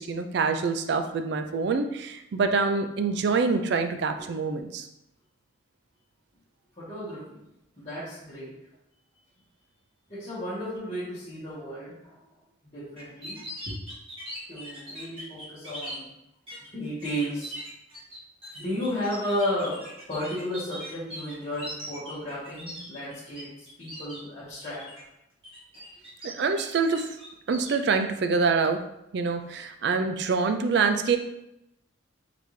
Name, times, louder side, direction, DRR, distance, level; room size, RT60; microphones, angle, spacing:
voice 1, 0.0-4.9 26.2-27.1 27.5-28.8 29.1-31.2, right 4 dB, 55° right, 8 dB, 0.4 m, -25 dB
voice 2, 6.8-7.2 7.8-8.5 10.1-12.2 12.6-13.4 13.7-13.8 14.5-16.1 16.6-17.5 18.5-19.8 20.1-25.0 25.7-25.8 29.5-29.6 30.0-30.1, equal, 35° left, -13 dB, 1.3 m, -33 dB
sound 1, 13.0-16.0 16.5-16.7 17.0-23.4 23.7-24.2 24.6-25.0 25.4-26.6 26.9-27.9, equal, 30° right, 1.2 m, -40 dB
4.0 x 3.3 x 3.2 m, 0.84 s
head